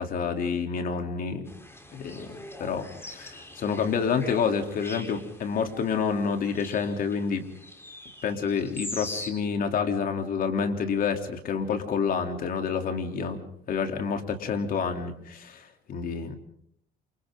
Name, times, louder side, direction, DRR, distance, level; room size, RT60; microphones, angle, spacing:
voice 1, 0.0-1.5 1.9-7.4 8.2-13.4 13.7-16.4, left 6 dB, 55° left, 5 dB, 3.5 m, -28 dB
sound 1, 1.5-9.3, left 1 dB, 15° left, 4.1 m, -43 dB
29.5 x 28.0 x 3.9 m, 0.68 s
cardioid pair, 110°, 17 cm